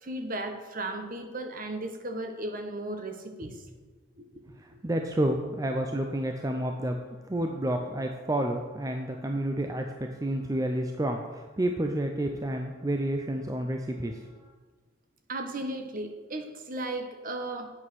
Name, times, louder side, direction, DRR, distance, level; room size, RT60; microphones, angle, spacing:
voice 1, 0.0-3.6 4.2-4.4 15.3-17.7, right 2 dB, 45° right, 6 dB, 1.1 m, -35 dB
voice 2, 4.6-14.5, right 1 dB, 15° right, 4 dB, 0.5 m, -30 dB
8.6 x 7.3 x 6.2 m, 1.3 s
head